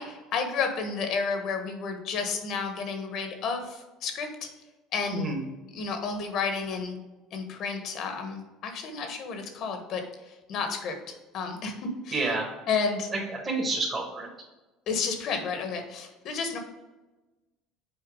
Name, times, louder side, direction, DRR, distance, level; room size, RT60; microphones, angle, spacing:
voice 1, 0.0-4.5 4.9-5.3 5.7-7.0 7.3-11.7 12.0-12.3 12.7-13.1 14.9-16.6, left 5 dB, 60° left, 5 dB, 1.2 m, -31 dB
voice 2, 12.1-12.5 13.1-14.3, right 3 dB, 30° right, -3 dB, 1.7 m, -29 dB
6.5 x 4.4 x 3.7 m, 1.1 s
supercardioid pair, 95°, 0 cm